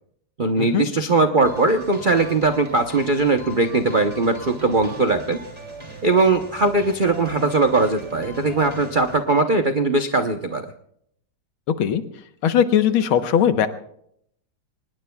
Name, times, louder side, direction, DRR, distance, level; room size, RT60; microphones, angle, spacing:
voice 1, 0.4-5.4 6.0-10.7, right 3 dB, 85° right, 6 dB, 0.4 m, -20 dB
sound 1, 1.4-9.2, right 2 dB, 15° right, 3.0 m, -39 dB
voice 2, 12.4-13.7, left 9 dB, 80° left, 9 dB, 1.9 m, -19 dB
24.5 x 20.0 x 2.3 m, 0.70 s
omnidirectional pair, 2.3 m